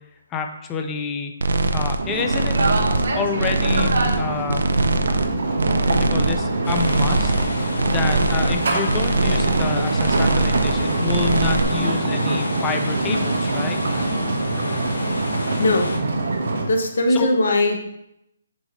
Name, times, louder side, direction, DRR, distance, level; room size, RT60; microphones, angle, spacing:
voice 1, 0.3-1.3 1.7-2.5 3.1-4.7 5.9-7.3 7.9-13.8 17.1-17.4, left 5 dB, 10° left, 5 dB, 0.4 m, -28 dB
sound 1, 1.4-2.0 2.3-3.1 3.4-4.2 4.5-5.3 5.6-6.4 6.7-7.5 7.8-8.5 8.9-9.7 10.0-10.8 11.1-11.6, right 2 dB, 80° right, 0.6 m, -22 dB
sound 2, 2.0-16.7, right 2 dB, 65° right, 1.2 m, -24 dB
sound 3, 6.6-16.0, left 2 dB, 80° left, 1.4 m, -31 dB
voice 2, 15.6-15.9 16.7-17.8, left 1 dB, 60° left, 3 dB, 1.2 m, -19 dB
7.9 x 4.1 x 3.6 m, 0.79 s
hypercardioid pair, 170°, 0 cm